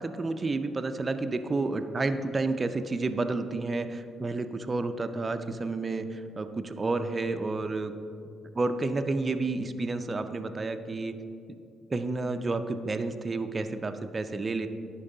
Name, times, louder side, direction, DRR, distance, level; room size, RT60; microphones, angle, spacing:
voice 1, 0.0-7.9 8.5-11.1 11.9-14.7, right 3 dB, 30° right, 8 dB, 0.4 m, -30 dB
11.0 x 4.5 x 3.8 m, 2.5 s
cardioid pair, 90°, 0 cm